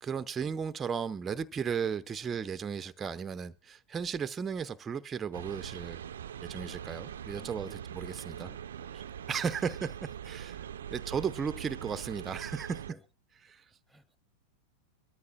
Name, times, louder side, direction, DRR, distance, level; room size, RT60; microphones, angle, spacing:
voice 1, 0.0-6.0 6.4-8.5 9.3-12.8 13.5-13.6, right 6 dB, 20° right, 0.7 m, -35 dB
sound 1, 5.3-12.9, right 9 dB, 65° right, 0.5 m, -42 dB
voice 2, 7.4-7.8 8.2-9.0 12.9-13.0 13.9-14.2, equal, ahead, 1.2 m, -57 dB
23.0 x 13.5 x 2.5 m
figure-of-eight pair, 90°, 0 cm